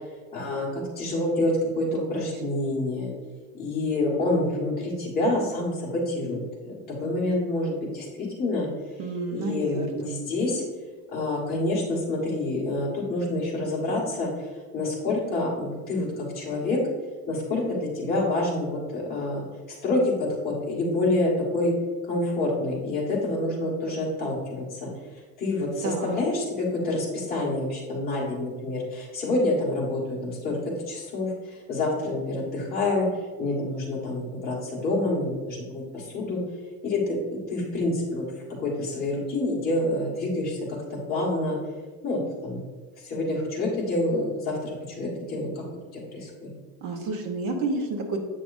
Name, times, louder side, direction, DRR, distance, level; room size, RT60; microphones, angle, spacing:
voice 1, 0.3-3.1 3.5-8.7 9.3-10.6 11.1-16.8 17.3-21.7 22.1-24.9 25.4-30.6 30.9-33.1 33.4-36.4 36.8-37.2 37.5-38.2 38.6-41.6 42.0-42.6 43.0-45.6 45.9-46.5, left 2 dB, 20° left, -5 dB, 1.8 m, -27 dB
voice 2, 9.0-10.2 25.8-26.2 46.8-48.2, right 3 dB, 50° right, 2 dB, 1.2 m, -30 dB
8.0 x 6.4 x 2.7 m, 1.4 s
cardioid pair, 180°, 41 cm